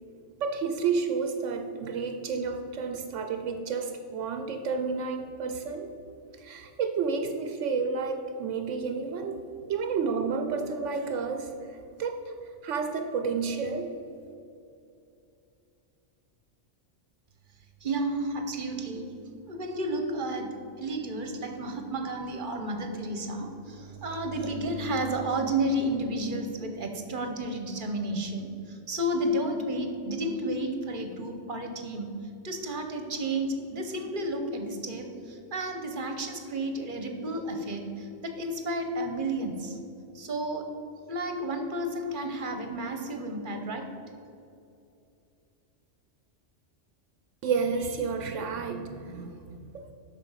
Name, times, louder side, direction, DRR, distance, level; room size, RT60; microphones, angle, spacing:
voice 1, 0.4-5.9 6.4-9.4 9.7-11.5 12.0-12.3 12.6-13.9 47.4-49.9, right 5 dB, 80° right, 6 dB, 1.0 m, -30 dB
voice 2, 17.8-19.1 19.5-20.5 20.8-32.2 32.4-39.8 40.1-40.7 41.1-43.9, right 1 dB, 45° right, 5 dB, 1.0 m, -32 dB
8.2 x 5.9 x 5.7 m, 2.7 s
omnidirectional pair, 1.3 m